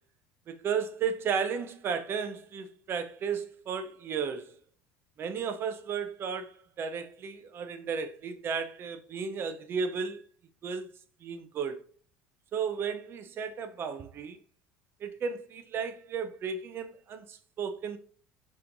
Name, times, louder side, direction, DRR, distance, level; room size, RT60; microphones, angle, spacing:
voice 1, 0.5-4.5 5.2-10.2 10.6-10.9 11.2-11.8 12.5-14.4 15.0-18.0, right 6 dB, 45° right, 0.6 m, -34 dB
5.4 x 3.0 x 2.6 m
supercardioid pair, 105°, 6 cm